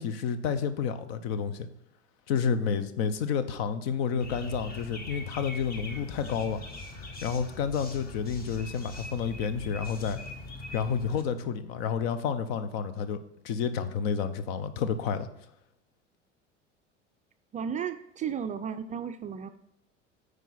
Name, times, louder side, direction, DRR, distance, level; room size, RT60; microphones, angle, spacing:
voice 1, 0.0-1.7 2.3-6.6 7.2-10.2 10.7-13.2 13.4-15.3, left 6 dB, 55° left, 11 dB, 0.8 m, -30 dB
FL Mocking birds, 4.2-11.2, left 2 dB, 25° left, 1.2 m, -41 dB
voice 2, 17.5-19.5, right 7 dB, 20° right, 8 dB, 0.4 m, -34 dB
9.1 x 4.8 x 4.0 m, 0.85 s
figure-of-eight pair, 75°, 36 cm